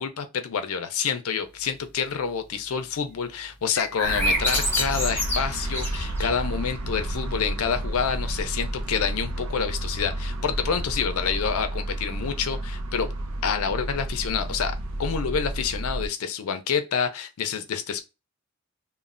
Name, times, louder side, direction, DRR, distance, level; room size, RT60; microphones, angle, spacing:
voice 1, 0.0-13.1 13.4-14.7 15.0-18.0, left 6 dB, 75° left, 0.5 m, -28 dB
sound 1, 3.7-6.5, left 1 dB, 10° left, 0.8 m, -27 dB
sound 2, 4.0-16.1, right 1 dB, 75° right, 0.6 m, -31 dB
3.1 x 2.1 x 2.4 m
head